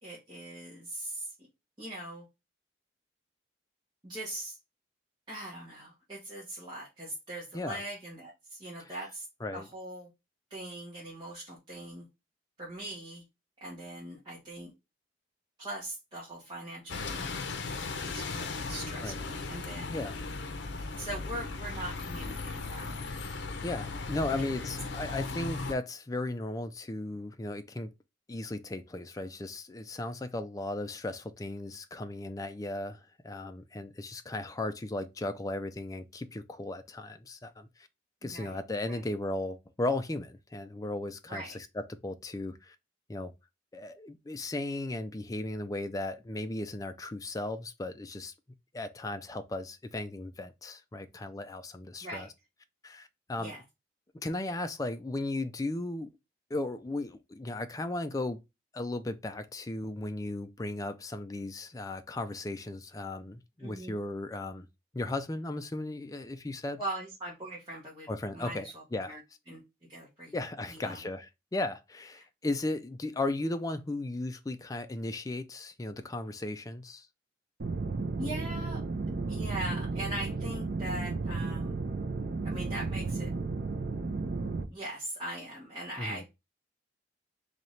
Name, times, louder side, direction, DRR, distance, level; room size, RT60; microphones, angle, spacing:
voice 1, 0.0-1.3 1.8-2.3 4.0-4.6 5.3-9.3 9.5-10.1 10.5-12.1 12.6-13.2 13.6-14.7 15.6-17.5 18.0-20.0 21.0-23.0 38.2-38.6 38.9-39.0 41.3-41.5 52.0-52.3 53.4-53.6 63.6-64.0 66.8-69.2 69.5-69.6 69.9-70.3 70.7-71.1 72.2-72.3 78.2-78.8 79.3-81.8 82.4-83.3 84.7-86.3, right 1 dB, 25° right, 1.4 m, -41 dB
Bus, 16.9-25.7, left 3 dB, 80° left, 0.6 m, -37 dB
voice 2, 23.6-27.9 28.3-37.7 38.2-42.8 43.1-43.3 43.7-48.3 48.7-52.3 52.8-53.5 54.2-56.1 56.5-58.4 58.7-64.7 64.9-66.8 68.1-69.2 70.3-77.1 86.0-86.2, left 2 dB, 20° left, 0.4 m, -36 dB
sound 1, 77.6-84.6, right 3 dB, 60° right, 0.6 m, -33 dB
4.1 x 2.9 x 3.1 m
head